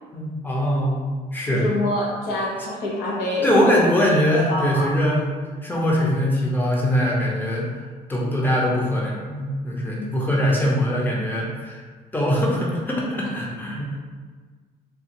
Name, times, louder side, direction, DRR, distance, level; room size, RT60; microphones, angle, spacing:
voice 1, 0.1-1.0 1.3-1.6 3.4-5.3 5.6-7.8 8.1-11.8 12.1-14.0, equal, 10° left, -3 dB, 0.7 m, -22 dB
voice 2, 1.5-4.1 4.3-4.9 10.4-10.6, left 1 dB, 75° left, -2 dB, 0.9 m, -26 dB
3.7 x 2.5 x 2.9 m, 1.5 s
cardioid pair, 110°, 17 cm